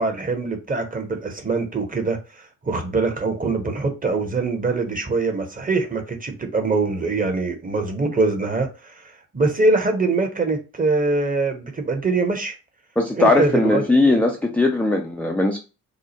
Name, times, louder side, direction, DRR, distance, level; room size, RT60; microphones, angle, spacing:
voice 1, 0.0-12.5 13.1-14.2, right 3 dB, 20° right, 0.9 m, -23 dB
voice 2, 13.0-15.6, left 2 dB, 5° left, 0.4 m, -19 dB
4.8 x 2.1 x 2.9 m
figure-of-eight pair, 45°, 46 cm